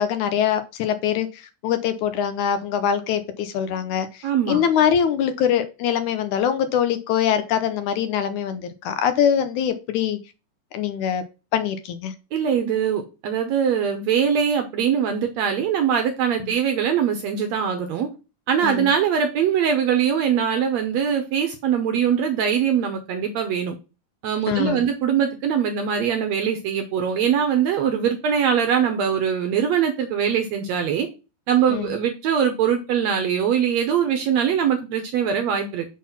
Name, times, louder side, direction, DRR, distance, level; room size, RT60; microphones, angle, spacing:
voice 1, 0.0-10.2 10.7-11.2 11.5-12.1 18.6-18.9 24.5-24.8 31.7-31.9, left 8 dB, 75° left, 2.0 m, -23 dB
voice 2, 4.2-4.6 12.3-18.1 18.5-23.7 24.2-31.1 31.5-35.9, right 8 dB, 70° right, 1.7 m, -22 dB
6.3 x 4.0 x 5.7 m
omnidirectional pair, 3.8 m